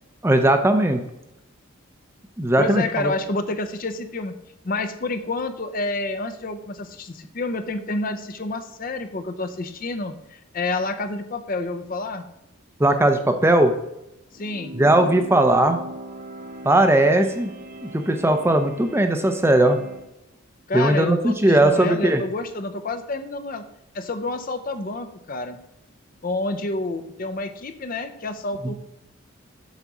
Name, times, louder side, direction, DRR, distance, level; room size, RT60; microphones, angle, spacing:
voice 1, 0.2-1.0 2.4-3.1 12.8-13.7 14.7-15.8 16.6-17.5 17.8-19.8 20.7-22.2 28.6-28.7, right 1 dB, 10° right, 6 dB, 0.5 m, -18 dB
voice 2, 2.6-4.4 4.6-12.2 14.3-14.7 20.7-23.6 23.9-25.6 26.2-28.7, left 2 dB, 40° left, 9 dB, 0.6 m, -29 dB
sound 1, 14.3-20.1, right 1 dB, 40° right, 0.8 m, -38 dB
8.2 x 4.0 x 6.0 m, 0.85 s
head